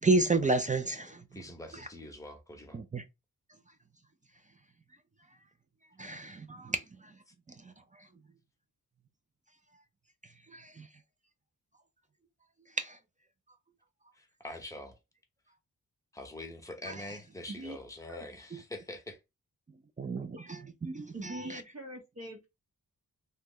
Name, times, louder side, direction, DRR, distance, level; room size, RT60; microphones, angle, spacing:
voice 1, 0.0-1.3 1.7-1.9 2.7-3.1 6.0-7.2 7.5-8.1 10.2-10.9 12.7-13.0 16.9-17.2 18.5-18.6 20.0-21.6, right 3 dB, 25° right, 0.3 m, -32 dB
voice 2, 1.3-2.8 14.1-15.0 16.1-19.2, left 1 dB, 10° left, 0.8 m, -44 dB
voice 3, 21.1-22.5, right 1 dB, 45° right, 0.8 m, -42 dB
3.0 x 2.1 x 3.5 m
wide cardioid pair, 95°, 35 cm